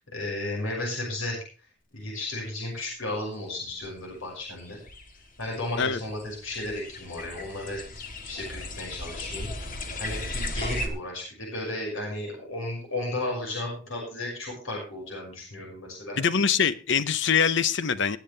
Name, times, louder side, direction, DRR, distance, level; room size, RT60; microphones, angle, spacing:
voice 1, 0.0-1.4 1.9-4.8 5.4-7.8 8.2-9.5 10.0-16.2, left 2 dB, 80° left, -2 dB, 5.9 m, -34 dB
sound 1, 3.8-3.9 4.6-10.9, left 1 dB, 45° left, 1.8 m, -36 dB
voice 2, 16.2-18.2, left 6 dB, 60° left, 15 dB, 0.8 m, -23 dB
20.0 x 8.9 x 3.3 m, 0.36 s
head